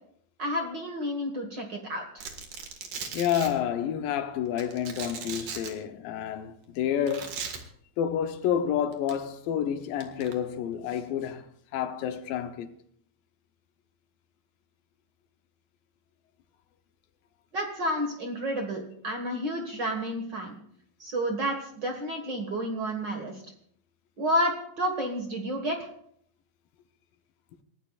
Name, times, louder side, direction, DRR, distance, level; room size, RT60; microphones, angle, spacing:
voice 1, 0.4-2.2 17.5-20.6 21.0-23.4 24.2-25.8, equal, 40° right, 1.8 m, -30 dB
Domestic sounds home sounds, 2.2-3.5 4.6-5.7 7.1-7.6 8.9-9.1 10.0-10.3, right 6 dB, 65° right, 3.2 m, -37 dB
voice 2, 3.1-7.4 8.0-11.5 11.7-12.7, left 9 dB, 80° left, 2.7 m, -29 dB
28.0 x 14.5 x 2.5 m
omnidirectional pair, 3.9 m